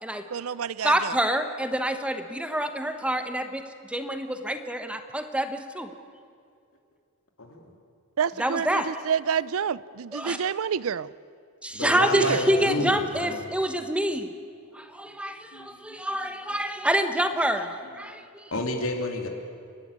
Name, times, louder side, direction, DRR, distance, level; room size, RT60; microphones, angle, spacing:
voice 1, 0.3-1.1 8.2-11.1 12.1-12.4, right 7 dB, 70° right, 20 dB, 0.5 m, -28 dB
voice 2, 0.8-3.6 3.9-5.9 8.4-8.9 10.1-10.4 11.6-14.3 14.7-18.5, right 1 dB, 5° right, 8 dB, 1.0 m, -27 dB
voice 3, 11.7-13.4 15.3-16.1 16.5-16.6 18.0-18.2 18.5-19.3, left 1 dB, 65° left, 3 dB, 3.0 m, -31 dB
29.5 x 12.0 x 9.5 m, 2.3 s
head